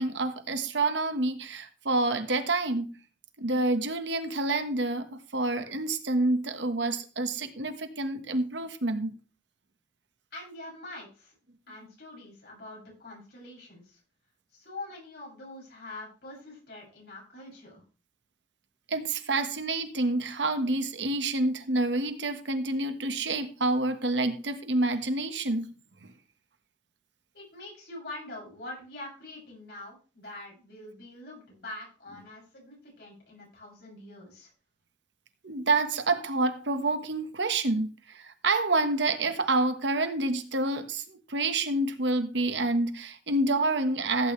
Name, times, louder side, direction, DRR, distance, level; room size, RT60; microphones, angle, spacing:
voice 1, 0.0-3.0 3.4-9.1 18.9-25.7 26.0-26.1 35.4-44.3, right 2 dB, 85° right, 1.4 m, -28 dB
voice 2, 10.3-11.4 11.7-14.0 14.5-17.8 27.3-34.5, left 2 dB, 60° left, 7.5 m, -44 dB
16.0 x 8.8 x 3.3 m
head